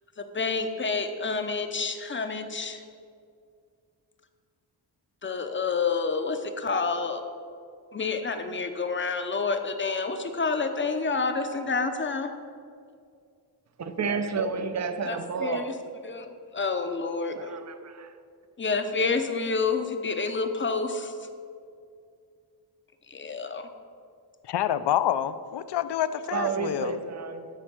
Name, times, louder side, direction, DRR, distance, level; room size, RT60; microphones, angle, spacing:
voice 1, 0.2-2.8 5.2-7.2 7.9-12.3 15.1-15.7 16.0-17.5 18.6-21.1 23.1-23.6, left 4 dB, 30° left, 7 dB, 0.6 m, -29 dB
voice 2, 13.8-15.7 17.3-18.1 26.3-27.5, right 5 dB, 40° right, 10 dB, 0.6 m, -31 dB
voice 3, 24.5-26.9, left 11 dB, 70° left, 14 dB, 0.5 m, -27 dB
12.5 x 4.4 x 6.0 m, 2.3 s
wide cardioid pair, 165°, 42 cm